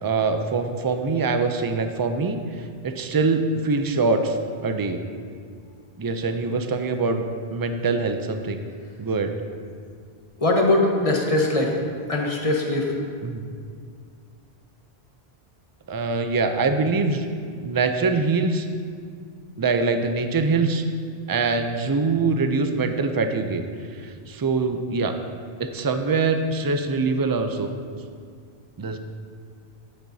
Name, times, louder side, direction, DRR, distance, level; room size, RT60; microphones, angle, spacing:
voice 1, 0.0-4.4 4.6-5.0 6.0-7.2 7.5-8.6 9.0-9.3 13.2-13.5 15.9-17.3 17.5-18.7 19.6-20.8 21.3-23.6 23.9-25.2 25.6-27.7 28.8-29.0, right 4 dB, 35° right, 7 dB, 0.3 m, -23 dB
voice 2, 10.4-11.7 12.1-13.0, left 2 dB, 35° left, 0 dB, 1.1 m, -21 dB
11.5 x 9.2 x 2.7 m, 2.1 s
omnidirectional pair, 1.1 m